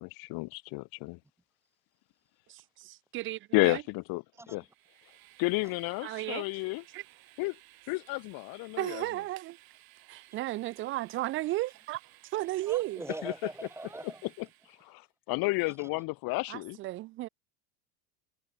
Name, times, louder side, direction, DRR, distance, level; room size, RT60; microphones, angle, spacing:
voice 1, 0.0-1.2 3.5-4.6 5.4-6.8 7.4-7.6 7.9-9.0 13.2-13.3 14.4-14.5 14.8-15.0 15.3-16.8, left 25 dB, 45° left, 0.8 m, -31 dB
voice 2, 2.5-3.8 6.0-6.4 6.9-7.0 8.8-9.6 10.1-12.0 12.3-13.0 16.5-17.3, right 17 dB, 30° right, 0.4 m, -34 dB
Train, 4.5-15.0, right 17 dB, 45° right, 3.7 m, -59 dB
voice 3, 12.7-14.2, right 2 dB, 5° right, 2.5 m, -41 dB
supercardioid pair, 145°, 49 cm